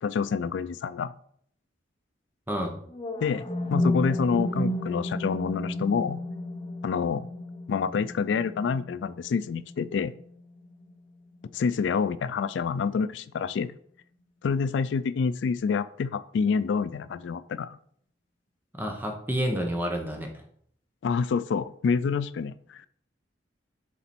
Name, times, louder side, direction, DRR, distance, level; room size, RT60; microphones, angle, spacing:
voice 1, 0.0-1.1 3.2-6.2 6.8-7.3 7.7-10.1 11.5-13.7 14.4-17.8 21.0-22.9, left 5 dB, 80° left, 15 dB, 0.3 m, -27 dB
sound 1, 2.9-10.9, left 1 dB, 30° left, 0.7 m, -32 dB
voice 2, 18.7-20.3, equal, 10° right, 2 dB, 1.1 m, -29 dB
7.1 x 4.0 x 4.4 m, 0.63 s
head